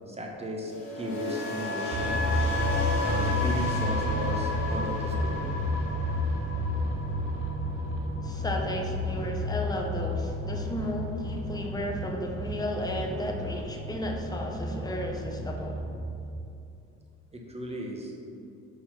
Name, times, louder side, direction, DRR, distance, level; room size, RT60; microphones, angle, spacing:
voice 1, 0.1-2.2 3.0-5.5 17.3-18.1, equal, 20° right, 0 dB, 1.2 m, -35 dB
sound 1, 0.6-8.8 9.0-9.4, left 2 dB, 65° left, 1.6 m, -33 dB
sound 2, 1.9-16.0, left 1 dB, 85° right, 1.2 m, -31 dB
voice 2, 8.2-15.8, left 1 dB, 15° left, 1 dB, 0.8 m, -33 dB
5.4 x 4.4 x 5.6 m, 2.6 s
cardioid pair, 90°, 30 cm